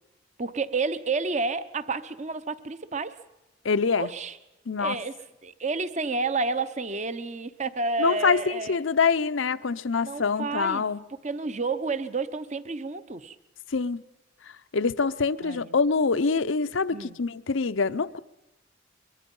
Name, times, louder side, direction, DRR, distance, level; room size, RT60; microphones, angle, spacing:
voice 1, 0.4-3.2 4.0-4.4 4.8-5.1 5.4-8.8 10.0-10.9 11.2-13.4 15.4-15.8 16.9-17.2, right 3 dB, 35° right, 0.8 m, -30 dB
voice 2, 3.6-4.1 4.7-5.0 8.0-11.0 13.7-14.0 14.7-18.2, left 4 dB, 80° left, 0.7 m, -25 dB
23.0 x 22.5 x 5.5 m
head